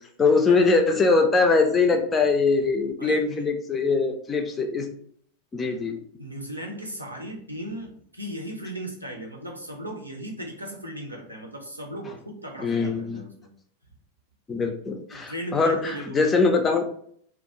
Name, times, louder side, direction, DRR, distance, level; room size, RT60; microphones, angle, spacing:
voice 1, 0.2-4.9 5.5-6.0 12.6-13.2 14.5-16.9, left 4 dB, 20° left, 4 dB, 0.4 m, -22 dB
voice 2, 3.0-3.5 6.2-13.5 15.1-16.2, equal, 85° right, 0 dB, 0.6 m, -36 dB
2.3 x 2.1 x 2.8 m, 0.63 s
figure-of-eight pair, 90°, 0 cm